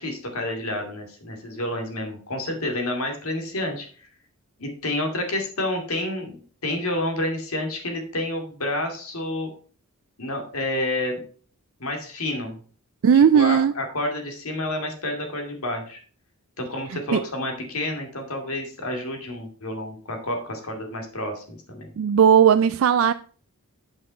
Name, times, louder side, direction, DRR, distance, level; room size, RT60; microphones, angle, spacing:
voice 1, 0.0-3.9 4.6-9.5 10.2-11.2 11.8-12.6 13.3-16.0 16.6-21.9, left 1 dB, 80° left, 4 dB, 2.4 m, -29 dB
voice 2, 13.0-13.7 16.9-17.2 22.0-23.1, right 8 dB, 65° right, 12 dB, 0.3 m, -17 dB
8.7 x 5.9 x 4.2 m, 0.43 s
head